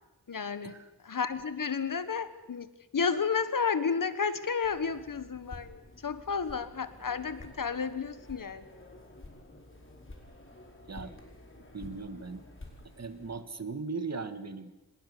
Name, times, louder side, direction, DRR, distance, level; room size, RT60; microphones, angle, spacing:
voice 1, 0.3-0.8 1.0-2.7 2.9-8.6, left 5 dB, 60° left, 12 dB, 1.5 m, -32 dB
sound 1, 4.6-13.4, left 2 dB, 35° left, 4.9 m, -50 dB
voice 2, 11.7-12.4 13.0-14.7, right 4 dB, 45° right, 11 dB, 1.7 m, -38 dB
25.5 x 21.0 x 6.9 m, 0.99 s
wide cardioid pair, 90°, 37 cm